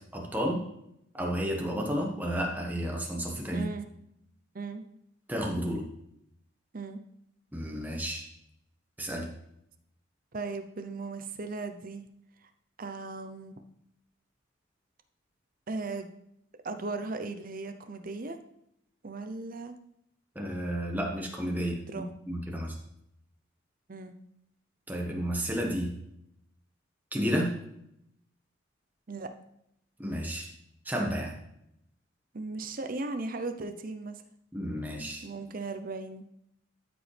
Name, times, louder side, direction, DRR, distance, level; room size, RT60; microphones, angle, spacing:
voice 1, 0.1-0.6 1.1-3.7 5.3-5.8 7.5-8.2 9.0-9.3 20.3-21.7 22.3-22.8 24.9-25.9 27.1-27.6 30.0-30.5 30.8-31.4 34.5-35.2, equal, 10° right, 0 dB, 1.3 m, -31 dB
voice 2, 3.5-3.9 4.5-4.8 6.7-7.0 10.3-12.0 12.8-13.5 15.7-16.1 16.6-18.4 19.0-19.8 21.9-22.1 23.9-24.1 29.1-29.3 32.3-34.2 35.2-36.3, right 3 dB, 45° right, 8 dB, 0.7 m, -37 dB
12.5 x 5.0 x 3.4 m, 0.78 s
head